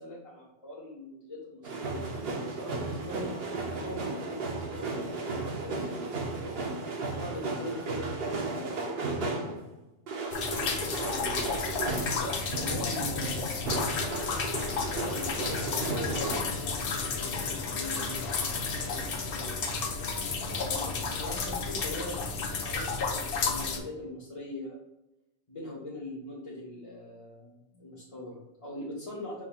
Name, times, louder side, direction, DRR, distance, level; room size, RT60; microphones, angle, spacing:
voice 1, 0.0-3.3 3.7-9.6 10.5-11.5 12.0-13.7 14.6-19.6 20.4-22.2 22.6-24.8 25.5-29.4, left 1 dB, 35° left, -5 dB, 0.8 m, -42 dB
sound 1, 1.6-9.7 10.1-16.4, right 3 dB, 70° right, 0.9 m, -34 dB
sound 2, 10.3-23.8, left 4 dB, 65° left, 0.8 m, -32 dB
5.6 x 3.6 x 2.3 m, 0.94 s
omnidirectional pair, 1.0 m